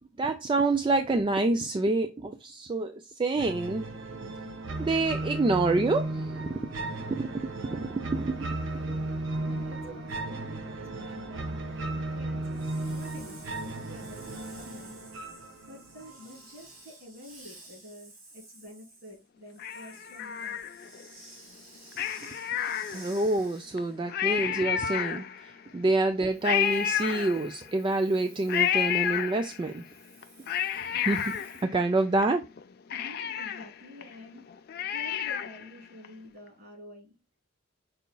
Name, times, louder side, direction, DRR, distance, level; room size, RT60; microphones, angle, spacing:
voice 1, 0.2-3.9 4.8-6.8 7.0-8.6 8.8-8.9 22.9-29.8 30.9-31.3 31.6-32.4, right 2 dB, 25° right, 0.3 m, -27 dB
sound 1, 3.4-16.4, right 2 dB, 70° right, 0.8 m, -35 dB
voice 2, 8.9-15.1 15.7-20.6 32.9-34.4 34.7-37.2, left 1 dB, 50° right, 2.9 m, -49 dB
Hiss, 12.5-24.0 26.2-31.6, right 2 dB, 85° right, 2.2 m, -53 dB
Cat, 19.6-21.1 21.9-23.3 23.8-23.9 24.1-25.6 26.4-27.8 28.5-29.8 30.2-32.2 32.6-32.7 32.9-35.7 36.0-36.1, left 9 dB, 50° left, 0.4 m, -31 dB
5.5 x 4.0 x 2.2 m
head